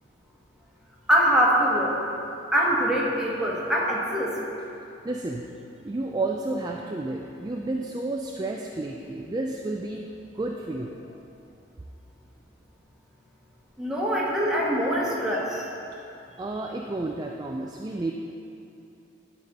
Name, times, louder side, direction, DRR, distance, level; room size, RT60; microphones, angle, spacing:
voice 1, 1.1-2.0 2.5-4.4 13.8-15.7, equal, 5° right, -5 dB, 1.3 m, -23 dB
voice 2, 5.0-5.4 5.8-10.1 10.3-10.9 16.4-18.1, right 2 dB, 20° right, 0 dB, 0.3 m, -31 dB
11.5 x 4.2 x 5.3 m, 2.7 s
head